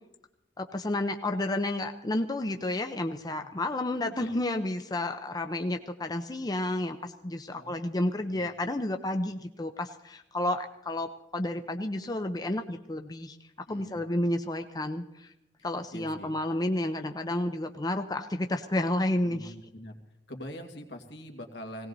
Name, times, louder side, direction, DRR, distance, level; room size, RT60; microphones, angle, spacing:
voice 1, 0.6-13.4 13.7-15.3 15.6-19.5, left 1 dB, 25° left, 6 dB, 0.6 m, -31 dB
voice 2, 7.5-8.4 13.7-13.9 15.9-16.4 19.2-20.0 20.3-21.9, equal, 75° left, 3 dB, 2.2 m, -44 dB
18.0 x 18.0 x 4.0 m, 0.86 s
head